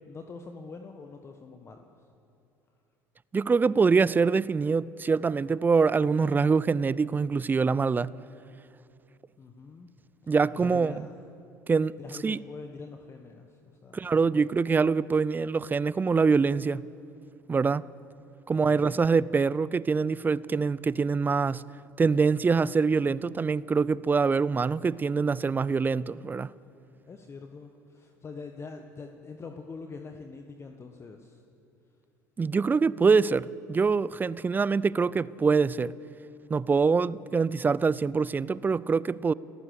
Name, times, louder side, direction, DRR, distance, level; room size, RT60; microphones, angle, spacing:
voice 1, 0.1-2.0 9.4-9.9 10.2-11.2 12.0-14.4 18.5-19.0 27.0-31.4, left 4 dB, 30° left, 1.4 m, -44 dB
voice 2, 3.3-8.1 10.3-11.1 11.7-12.0 12.2-12.4 13.9-16.8 17.5-17.8 18.5-21.6 22.0-26.5 32.4-35.9 36.5-39.3, right 5 dB, 20° right, 0.5 m, -24 dB
29.5 x 14.0 x 6.5 m
figure-of-eight pair, 65°, 9 cm